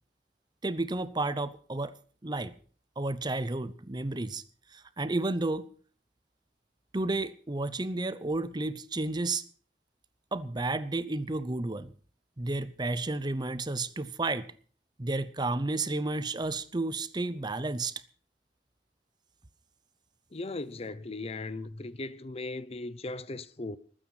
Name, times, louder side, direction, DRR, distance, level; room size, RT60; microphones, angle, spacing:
voice 1, 0.6-1.9 2.2-2.5 3.0-4.4 4.7-5.7 6.9-9.4 10.3-11.9 12.4-14.5 15.0-17.9, right 2 dB, 25° right, 0.7 m, -31 dB
voice 2, 20.3-23.8, left 2 dB, 35° left, 0.7 m, -38 dB
20.5 x 9.1 x 6.0 m
head